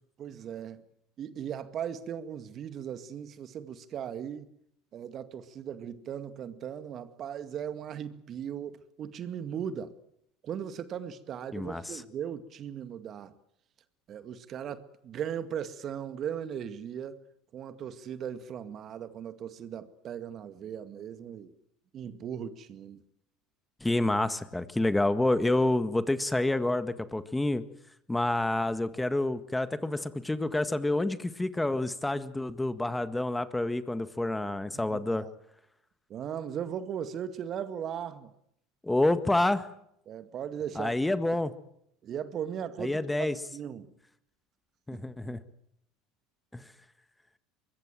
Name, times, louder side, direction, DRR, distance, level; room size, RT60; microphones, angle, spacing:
voice 1, 0.2-0.8 1.2-4.5 4.9-9.9 10.4-13.3 14.1-17.2 17.5-21.5 21.9-23.0 34.7-35.3 36.1-38.3 40.1-41.1 42.0-43.9 44.9-45.0, right 8 dB, 45° right, 2.1 m, -38 dB
voice 2, 11.5-12.0 23.8-27.6 28.1-35.2 38.8-39.7 40.7-41.5 42.8-43.4 44.9-45.4 46.5-46.6, left 2 dB, 10° left, 1.7 m, -28 dB
24.5 x 22.0 x 7.6 m
hypercardioid pair, 75°, 0 cm